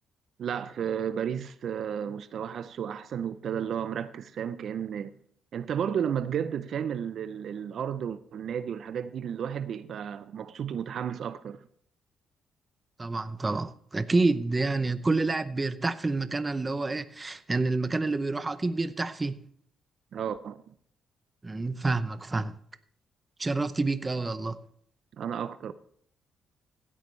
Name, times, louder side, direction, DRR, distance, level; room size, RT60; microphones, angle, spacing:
voice 1, 0.4-5.1 5.5-11.7 20.1-20.7 25.2-25.7, right 8 dB, 60° right, 0.6 m, -33 dB
voice 2, 13.0-19.4 21.4-22.5 23.4-24.6, right 3 dB, 20° right, 0.7 m, -28 dB
16.0 x 9.5 x 3.2 m
cardioid pair, 90°, 0 cm